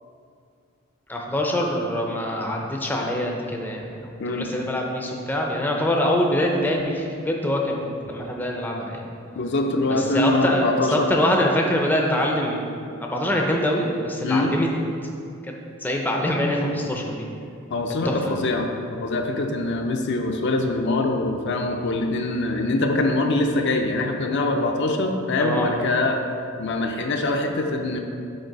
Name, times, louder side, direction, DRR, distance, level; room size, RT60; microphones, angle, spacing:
voice 1, 1.1-9.1 9.9-12.7 13.0-14.7 15.4-15.5 15.8-17.3 18.0-18.4 25.3-25.7, left 1 dB, 10° left, 0 dB, 0.5 m, -24 dB
voice 2, 9.4-11.1 14.2-14.5 17.7-26.2 26.6-28.0, left 2 dB, 55° left, 3 dB, 0.5 m, -23 dB
6.5 x 4.5 x 4.6 m, 2.4 s
head